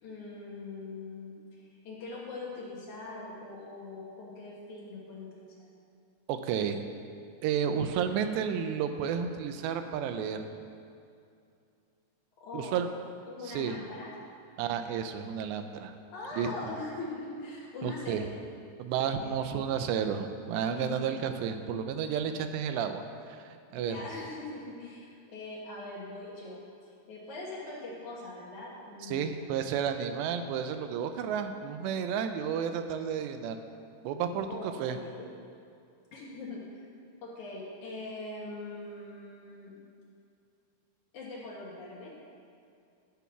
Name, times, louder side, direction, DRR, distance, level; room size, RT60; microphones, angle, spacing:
voice 1, 0.0-5.7 12.4-12.8 13.1-14.1 16.1-18.3 19.2-19.8 20.7-21.2 23.7-26.6 27.1-29.8 34.5-34.6 34.9-35.3 36.1-36.9 37.2-39.7 41.1-42.1, left 2 dB, 55° left, -5 dB, 2.5 m, -42 dB
voice 2, 6.3-6.8 7.4-10.4 12.5-12.9 13.5-13.8 14.6-15.9 16.4-16.5 17.8-18.2 18.8-23.0 23.3-24.0 29.1-33.6 34.0-35.0, right 8 dB, 85° right, 8 dB, 2.9 m, -32 dB
12.5 x 7.0 x 5.9 m, 2.5 s
omnidirectional pair, 4.9 m